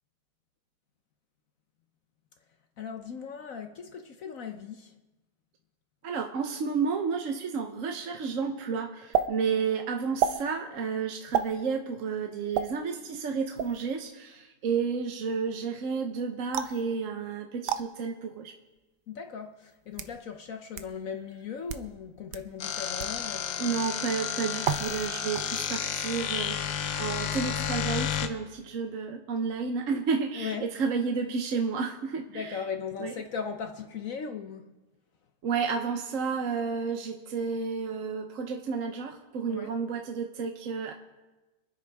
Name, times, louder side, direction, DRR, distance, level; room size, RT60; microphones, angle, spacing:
voice 1, 2.8-4.9 19.1-23.7 30.4-30.7 32.3-34.7 39.5-39.7, left 6 dB, 60° left, 1.1 m, -38 dB
voice 2, 6.0-18.5 23.6-32.6 33.0-33.1 35.4-40.9, right 5 dB, 55° right, 1.1 m, -31 dB
sound 1, 9.1-9.3 10.2-10.4 11.3-11.5 12.5-12.7 13.6-13.8 16.5-16.8 17.7-17.8 18.8-18.9 19.7-20.2 20.8-20.9 21.6-21.9 22.3-22.4 23.0-23.2 24.6-25.1 25.3-25.8, right 8 dB, 80° right, 1.3 m, -29 dB
sound 2, 22.6-28.3, left 8 dB, 80° left, 1.4 m, -31 dB
26.5 x 9.8 x 3.5 m
omnidirectional pair, 1.8 m